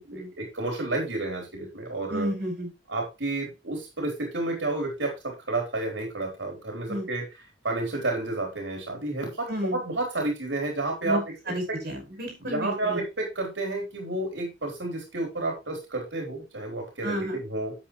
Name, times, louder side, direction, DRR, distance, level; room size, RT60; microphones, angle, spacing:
voice 1, 0.0-2.3 2.9-7.3 7.6-11.2 12.5-17.2 17.4-17.7, right 2 dB, 90° right, 1 dB, 3.8 m, -30 dB
voice 2, 2.1-2.7 6.9-7.1 9.5-9.8 11.0-13.0 17.0-17.4, equal, 60° right, 3 dB, 5.6 m, -31 dB
9.8 x 8.3 x 3.2 m, 0.25 s
head